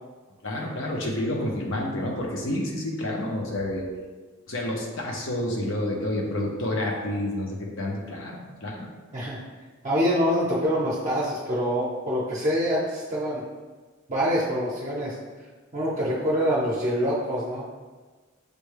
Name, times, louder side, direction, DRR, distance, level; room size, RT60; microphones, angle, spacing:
voice 1, 0.4-3.9 4.5-8.9, left 1 dB, 65° left, -1 dB, 0.8 m, -29 dB
voice 2, 9.8-13.4 14.1-15.1 15.7-17.7, equal, 35° right, -7 dB, 0.7 m, -25 dB
6.6 x 2.2 x 3.2 m, 1.3 s
head